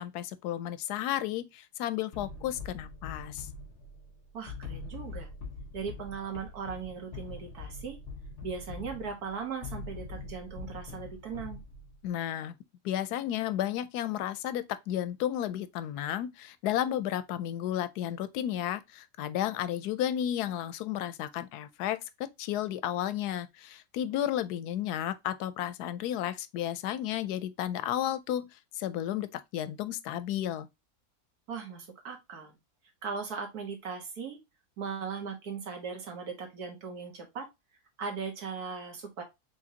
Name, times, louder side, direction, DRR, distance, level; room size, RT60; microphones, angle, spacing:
voice 1, 0.0-3.5 12.0-12.5 12.8-22.0 22.4-30.7, left 11 dB, 90° left, 1.1 m, -33 dB
sound 1, 2.1-12.1, left 4 dB, 50° left, 1.8 m, -43 dB
voice 2, 4.3-5.3 5.7-8.0 8.4-11.6 31.5-32.6 33.0-34.4 34.8-37.5 38.0-39.2, right 5 dB, 75° right, 1.8 m, -38 dB
4.9 x 3.6 x 2.7 m
omnidirectional pair, 1.6 m